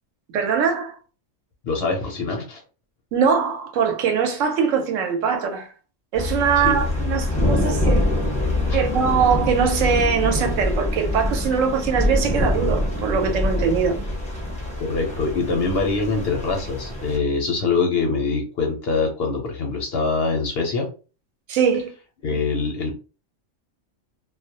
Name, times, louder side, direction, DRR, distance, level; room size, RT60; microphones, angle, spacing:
voice 1, 0.3-1.0 3.1-5.7 6.1-8.1 8.7-14.0 21.5-21.9, right 6 dB, 75° right, 1.0 m, -22 dB
voice 2, 1.6-2.6 6.6-6.8 14.8-20.9 22.2-22.9, left 4 dB, 65° left, 0.7 m, -24 dB
sound 1, 6.1-17.2, left 1 dB, 5° left, 0.6 m, -24 dB
2.3 x 2.0 x 2.7 m
omnidirectional pair, 1.4 m